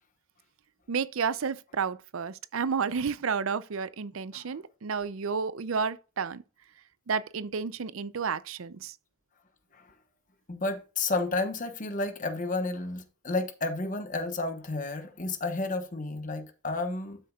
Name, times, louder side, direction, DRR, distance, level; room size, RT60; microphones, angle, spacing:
voice 1, 0.9-6.4 7.1-8.9, right 5 dB, 80° right, 0.6 m, -31 dB
voice 2, 10.5-17.2, left 3 dB, 40° left, 1.1 m, -31 dB
12.0 x 6.5 x 2.4 m
head